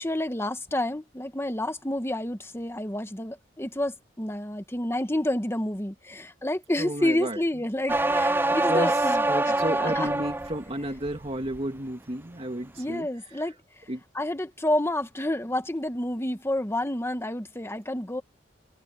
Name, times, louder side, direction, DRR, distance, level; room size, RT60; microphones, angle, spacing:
voice 1, 0.0-10.1 12.8-13.5 14.1-18.2, left 1 dB, 15° left, 1.5 m, -29 dB
voice 2, 6.8-7.4 8.7-13.1 13.3-13.5 13.9-14.0, right 1 dB, 35° right, 2.6 m, -32 dB
sound 1, 7.9-10.6 11.0-11.6, right 2 dB, 10° right, 0.5 m, -25 dB
head